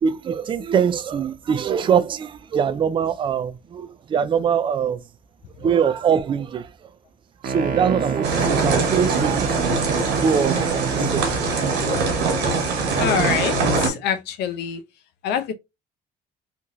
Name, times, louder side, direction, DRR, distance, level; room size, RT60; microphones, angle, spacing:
voice 1, 0.0-5.0 5.6-6.7 7.4-11.7, right 7 dB, 30° right, 0.3 m, -23 dB
sound 1, 7.4-11.4, right 5 dB, 55° right, 0.8 m, -28 dB
sound 2, 8.2-13.9, right 4 dB, 85° right, 1.2 m, -22 dB
voice 2, 13.0-14.8 15.2-15.5, left 8 dB, 80° left, 0.5 m, -25 dB
2.9 x 2.6 x 2.5 m
cardioid pair, 110°, 17 cm